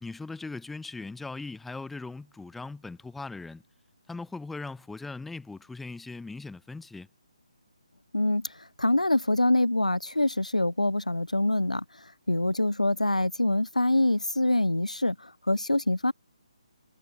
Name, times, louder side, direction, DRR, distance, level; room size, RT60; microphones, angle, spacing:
voice 1, 0.0-3.6 4.1-7.1, left 3 dB, 5° left, 0.9 m, -39 dB
voice 2, 8.1-11.8 12.3-16.1, left 1 dB, 85° left, 0.4 m, -25 dB
figure-of-eight pair, 145°, 4 cm